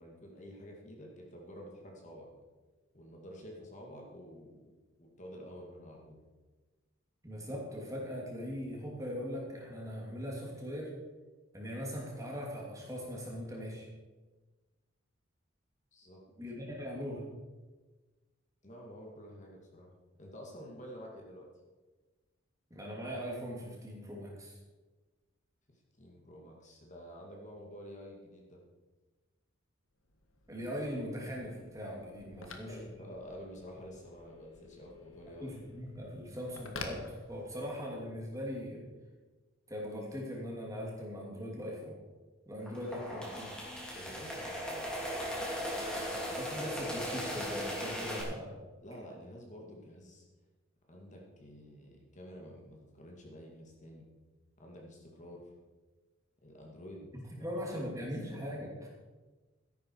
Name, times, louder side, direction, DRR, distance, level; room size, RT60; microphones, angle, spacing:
voice 1, 0.0-2.3 2.9-6.2 15.9-16.2 18.6-19.9 20.2-21.5 25.7-28.6 32.3-35.5 43.1-43.5 43.9-44.9 45.9-46.5 48.8-50.3 50.9-54.1 54.6-55.4 56.4-57.1 57.4-58.1, equal, 35° left, 0 dB, 2.3 m, -50 dB
voice 2, 7.2-10.9 11.5-13.9 16.4-17.2 22.7-24.6 30.5-32.7 35.4-38.8 39.7-42.0 42.5-43.4 46.3-48.6 57.1-58.9, equal, 15° right, -2 dB, 2.7 m, -40 dB
Telephone, 30.0-37.9, left 4 dB, 75° left, 1.5 m, -50 dB
sound 1, 42.6-48.2, equal, 5° left, 2.6 m, -38 dB
13.5 x 10.5 x 4.7 m, 1.2 s
head